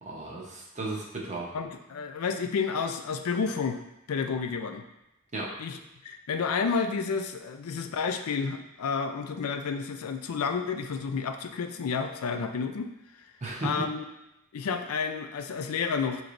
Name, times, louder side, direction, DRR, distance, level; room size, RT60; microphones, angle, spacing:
voice 1, 0.0-1.5 5.3-5.5 13.4-13.9, right 2 dB, 35° right, -3 dB, 0.8 m, -35 dB
voice 2, 1.5-3.8 4.1-4.8 5.6-12.9 13.6-14.0 14.5-16.2, left 5 dB, 80° left, 7 dB, 0.4 m, -30 dB
5.9 x 3.0 x 2.5 m, 0.89 s
head